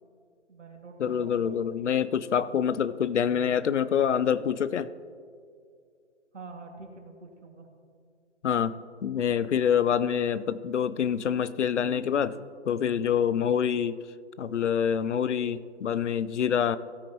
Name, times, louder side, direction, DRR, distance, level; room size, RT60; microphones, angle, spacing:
voice 1, 0.5-1.6 6.3-7.7, right 3 dB, 80° right, 2 dB, 2.0 m, -45 dB
voice 2, 1.0-4.9 8.4-14.0 14.4-16.8, left 8 dB, 75° left, 17 dB, 0.6 m, -26 dB
16.5 x 9.3 x 2.9 m, 2.3 s
figure-of-eight pair, 130°, 35 cm